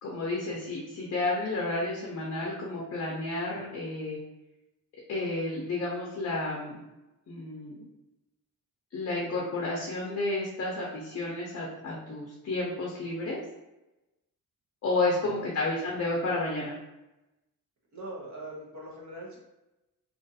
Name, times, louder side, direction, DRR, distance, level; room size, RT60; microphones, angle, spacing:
voice 1, 0.0-4.2 5.1-6.8 7.3-7.9 8.9-13.4 14.8-16.8, left 2 dB, 45° left, -3 dB, 0.5 m, -31 dB
voice 2, 17.9-19.4, right 1 dB, 55° right, -3 dB, 0.8 m, -42 dB
2.4 x 2.3 x 2.6 m, 0.99 s
wide cardioid pair, 175°, 35 cm